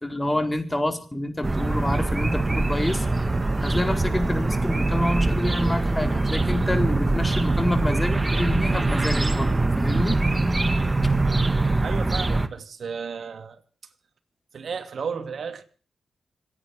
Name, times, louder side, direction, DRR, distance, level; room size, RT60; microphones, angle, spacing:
voice 1, 0.0-3.1 3.6-10.2, left 1 dB, 15° left, 4.5 m, -27 dB
sound 1, 1.4-12.5, right 2 dB, 30° right, 2.0 m, -23 dB
voice 2, 11.8-13.6 14.5-15.6, right 6 dB, 65° right, 2.7 m, -33 dB
26.5 x 9.8 x 5.2 m
cardioid pair, 50°, 0 cm